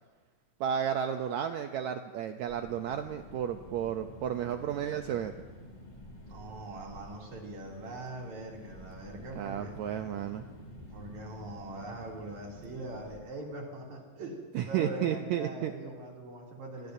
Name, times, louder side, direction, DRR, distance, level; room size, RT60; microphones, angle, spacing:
voice 1, 0.6-5.3 9.4-10.4 14.5-15.7, right 9 dB, 85° right, 6 dB, 1.6 m, -32 dB
sound 1, 2.5-13.2, left 1 dB, 25° left, 2.1 m, -49 dB
voice 2, 6.3-9.8 10.9-16.9, right 2 dB, 55° right, -2 dB, 4.1 m, -42 dB
26.0 x 20.5 x 2.7 m, 1.4 s
omnidirectional pair, 4.0 m